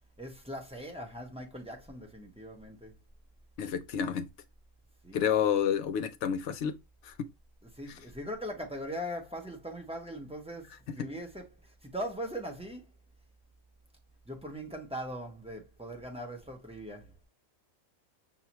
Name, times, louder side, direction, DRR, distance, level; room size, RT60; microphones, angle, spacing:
voice 1, 0.2-3.0 5.0-5.4 7.7-12.9 14.2-17.1, equal, 5° right, 0.8 m, -40 dB
voice 2, 3.6-4.3 5.1-6.8 7.0-7.3, left 8 dB, 70° left, 0.8 m, -29 dB
5.6 x 2.7 x 2.9 m
omnidirectional pair, 1.4 m